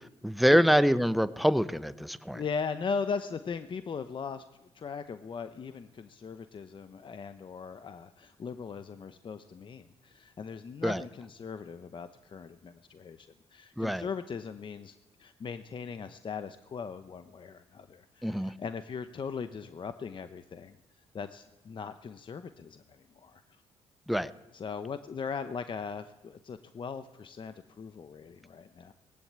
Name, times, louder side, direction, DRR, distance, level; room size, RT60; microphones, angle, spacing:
voice 1, 0.2-2.4 10.8-11.0 13.8-14.1 18.2-18.5 24.1-24.3, equal, ahead, 13 dB, 0.9 m, -25 dB
voice 2, 2.3-4.4 4.7-20.8 21.1-23.6 24.5-28.9, left 5 dB, 45° left, 11 dB, 0.9 m, -39 dB
19.0 x 17.0 x 8.8 m, 0.98 s
cardioid pair, 85°, 11 cm